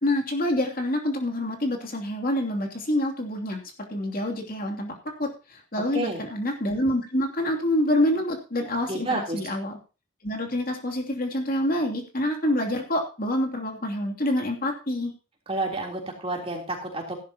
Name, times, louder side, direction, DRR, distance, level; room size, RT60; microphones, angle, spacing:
voice 1, 0.0-3.6 3.9-9.1 9.3-9.8 10.2-15.1, left 1 dB, 45° left, 2 dB, 2.8 m, -27 dB
voice 2, 8.9-9.4 15.5-17.2, right 2 dB, 30° right, 1 dB, 3.4 m, -29 dB
16.0 x 11.5 x 2.9 m, 0.32 s
head